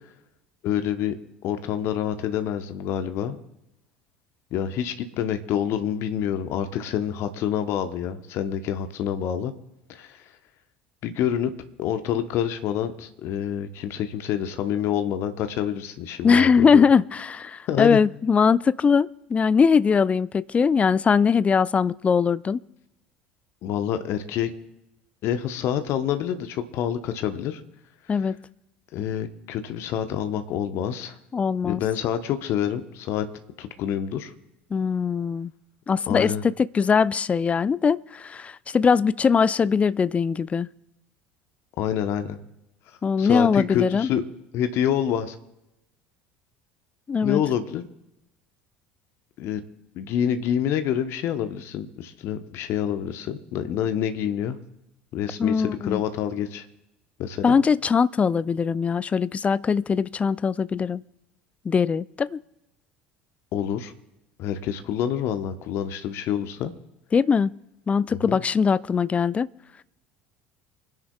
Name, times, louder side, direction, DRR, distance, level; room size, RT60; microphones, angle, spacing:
voice 1, 0.6-1.2 1.4-3.4 4.5-9.5 9.9-10.3 11.0-11.5 11.8-16.9 17.7-18.0 23.6-24.5 25.2-27.6 28.1-28.3 28.9-31.2 31.6-33.3 33.6-34.3 36.1-36.4 41.8-42.4 43.2-44.2 44.5-45.4 47.2-47.9 49.4-49.6 49.9-54.6 55.1-56.7 57.2-57.6 63.5-63.9 64.4-66.7 68.1-68.4, left 9 dB, 50° left, 0.9 m, -27 dB
voice 2, 16.2-22.6 28.1-28.4 31.3-31.8 34.7-35.5 35.9-40.7 43.0-44.1 47.1-47.4 55.4-56.0 57.4-61.0 61.7-62.4 67.1-67.5 67.9-69.5, left 6 dB, 25° left, 0.4 m, -21 dB
28.5 x 10.5 x 2.3 m
figure-of-eight pair, 65°, 6 cm